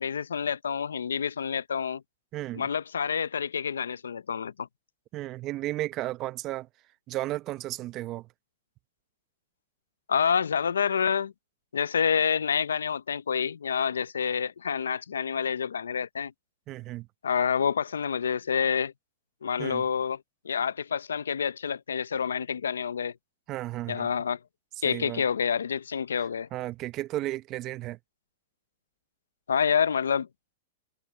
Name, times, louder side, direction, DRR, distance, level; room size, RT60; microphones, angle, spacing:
voice 1, 0.0-2.0 2.5-4.7 10.1-11.3 11.7-16.3 17.2-18.9 19.4-23.1 23.9-24.4 24.8-26.5 29.5-30.3, left 7 dB, 85° left, 0.7 m, -28 dB
voice 2, 2.3-2.7 5.1-6.7 7.1-8.3 16.7-17.1 19.6-19.8 23.5-24.1 24.8-25.2 26.5-28.0, right 16 dB, 35° right, 1.0 m, -34 dB
hypercardioid pair, 120°, 0 cm